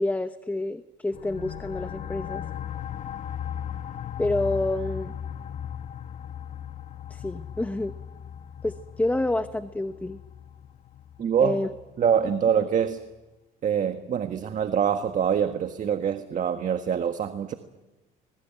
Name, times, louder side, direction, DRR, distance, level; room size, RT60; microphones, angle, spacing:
voice 1, 0.0-2.4 4.2-5.1 7.1-7.9 8.6-10.2 11.4-11.7, left 2 dB, 10° left, 10 dB, 1.0 m, -28 dB
sound 1, 1.1-12.5, left 9 dB, 50° left, 1.1 m, -37 dB
voice 2, 11.2-11.6 12.0-13.0 13.6-17.5, right 8 dB, 50° right, 8 dB, 1.5 m, -25 dB
26.5 x 21.5 x 9.1 m, 1.1 s
cardioid pair, 110°, 17 cm